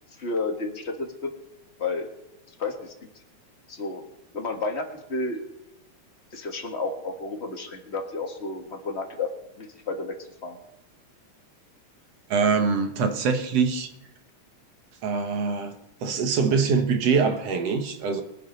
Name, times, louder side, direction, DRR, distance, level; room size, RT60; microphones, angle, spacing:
voice 1, 0.2-1.3 1.8-2.1 2.6-2.9 3.7-4.0 4.3-5.4 6.3-9.3 9.6-10.6, left 3 dB, 30° left, 1.4 m, -31 dB
voice 2, 12.3-13.9 15.0-15.8 16.0-18.2, right 5 dB, 65° right, 2.3 m, -23 dB
22.0 x 7.5 x 5.4 m
omnidirectional pair, 3.3 m